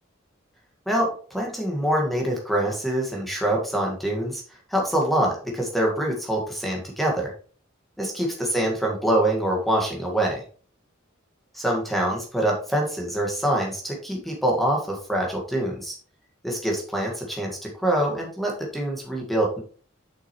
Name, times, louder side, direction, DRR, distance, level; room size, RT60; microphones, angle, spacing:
voice 1, 0.8-4.4 4.7-7.3 8.0-10.4 11.5-15.9 16.4-19.6, right 1 dB, ahead, -1 dB, 1.7 m, -25 dB
7.7 x 6.0 x 3.1 m, 0.41 s
head